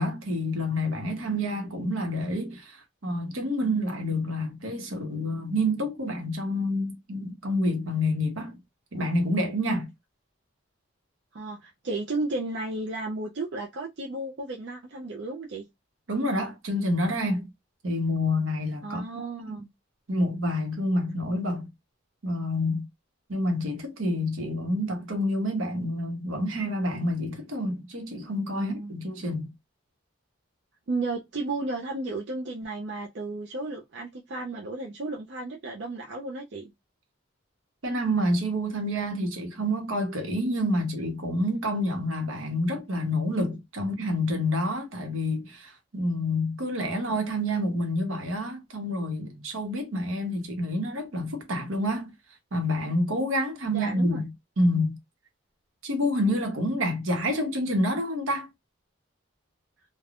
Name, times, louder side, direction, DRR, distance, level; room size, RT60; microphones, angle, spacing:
voice 1, 0.0-8.6 8.9-9.9 16.1-17.5 17.8-19.6 20.1-21.7 22.2-22.8 23.3-29.5 37.8-52.1 52.5-55.0 55.8-58.5, left 1 dB, 80° right, 1.0 m, -28 dB
voice 2, 11.3-15.7 18.8-19.7 28.5-28.9 30.9-36.7 43.8-44.0 53.7-54.2, right 2 dB, 55° right, 0.5 m, -33 dB
3.4 x 2.2 x 2.4 m
head